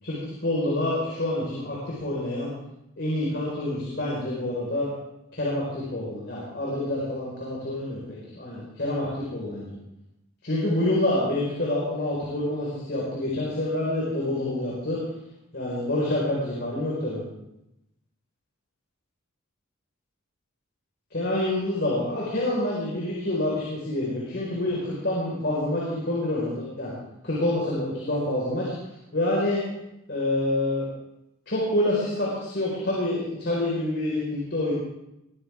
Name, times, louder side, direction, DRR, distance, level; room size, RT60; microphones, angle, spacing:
voice 1, 0.0-2.5 3.0-4.9 5.3-9.8 10.4-15.0 15.5-17.2 21.1-26.9 27.2-28.7 29.1-29.6 30.1-30.9 31.5-34.7, left 1 dB, 50° left, -5 dB, 4.9 m, -27 dB
22.0 x 14.5 x 3.6 m, 0.86 s
head